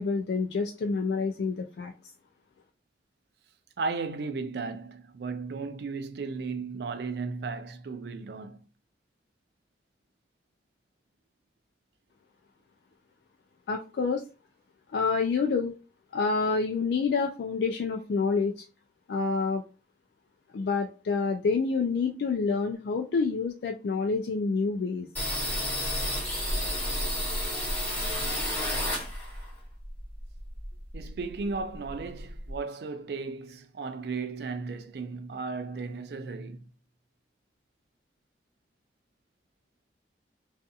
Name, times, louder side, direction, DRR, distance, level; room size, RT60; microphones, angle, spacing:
voice 1, 0.0-1.9 13.7-14.2 14.9-15.7 16.1-18.6 19.1-19.6 20.5-25.1, left 4 dB, 70° left, 0.3 m, -28 dB
voice 2, 3.8-8.6 30.9-36.7, right 4 dB, 60° right, 0.3 m, -35 dB
sound 1, 25.1-29.5 29.8-31.2 31.5-31.6 31.9-32.6, equal, 10° left, 1.2 m, -31 dB
2.6 x 2.4 x 2.3 m
head